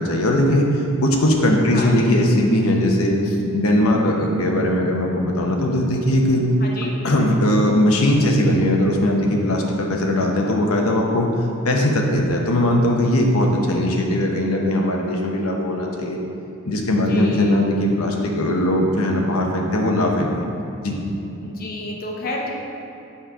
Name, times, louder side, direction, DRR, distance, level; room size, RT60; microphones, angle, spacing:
voice 1, 0.0-6.4 7.0-9.6 9.9-11.3 11.6-16.2 16.6-20.3 20.8-21.0, left 1 dB, 90° left, 1 dB, 1.0 m, -19 dB
voice 2, 1.7-2.1 6.6-6.9 17.1-17.6 21.4-22.5, left 2 dB, 45° left, -2 dB, 0.7 m, -30 dB
8.1 x 4.3 x 5.0 m, 2.9 s
head